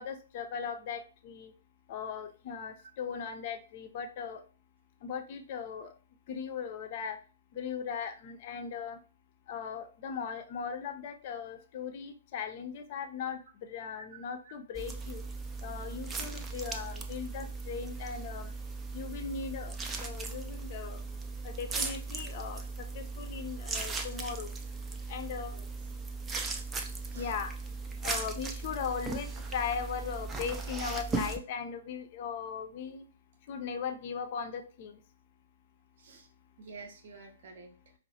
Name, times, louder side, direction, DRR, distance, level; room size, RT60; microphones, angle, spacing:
voice 1, 0.0-1.5 1.9-4.4 5.0-5.9 6.3-7.2 7.5-9.0 9.5-15.2 15.6-18.5 18.9-21.1 21.4-24.5 25.1-25.6 27.1-27.5 28.0-33.1 33.4-35.0, left 6 dB, 40° left, 7 dB, 0.5 m, -38 dB
sound 1, 14.7-31.4, right 3 dB, 15° right, 0.4 m, -38 dB
voice 2, 36.0-36.3 36.6-37.9, right 4 dB, 50° right, 3 dB, 0.7 m, -50 dB
4.5 x 2.0 x 2.8 m, 0.38 s
figure-of-eight pair, 115°, 0 cm